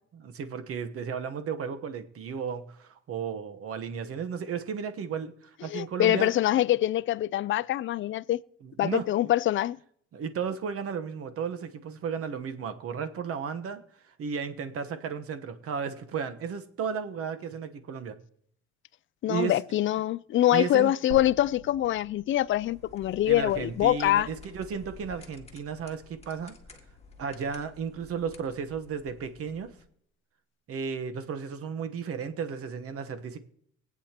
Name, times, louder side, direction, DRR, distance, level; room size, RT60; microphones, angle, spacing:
voice 1, 0.1-6.3 8.6-9.1 10.1-13.8 14.1-18.2 19.3-19.6 20.5-20.9 23.3-26.5 27.2-29.7 30.7-33.4, right 6 dB, 50° right, 1.1 m, -34 dB
voice 2, 5.7-8.4 8.8-9.8 19.2-24.3, left 13 dB, 45° left, 0.4 m, -24 dB
sound 1, 21.1-25.3 25.6-25.7 27.1-27.2, right 5 dB, 75° right, 1.2 m, -47 dB
sound 2, 22.5-29.8, left 4 dB, 20° left, 1.8 m, -51 dB
24.0 x 8.6 x 2.9 m
cardioid pair, 110°, 29 cm